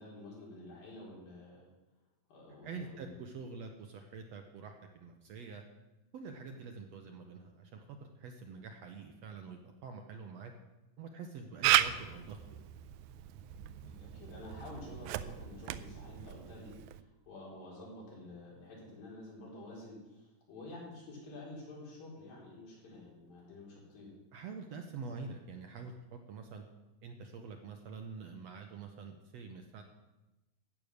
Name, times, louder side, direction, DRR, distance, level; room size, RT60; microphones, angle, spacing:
voice 1, 0.0-1.7 2.3-3.2 13.8-24.1 25.1-25.2, left 2 dB, 85° left, -4 dB, 5.9 m, -50 dB
voice 2, 2.6-5.6 6.1-10.5 11.0-12.7 24.3-26.6 27.0-29.8, right 5 dB, 70° right, 4 dB, 1.7 m, -46 dB
Camera, 11.6-17.0, right 13 dB, 85° right, 1.6 m, -35 dB
14.0 x 8.8 x 6.5 m, 1.0 s
omnidirectional pair, 3.9 m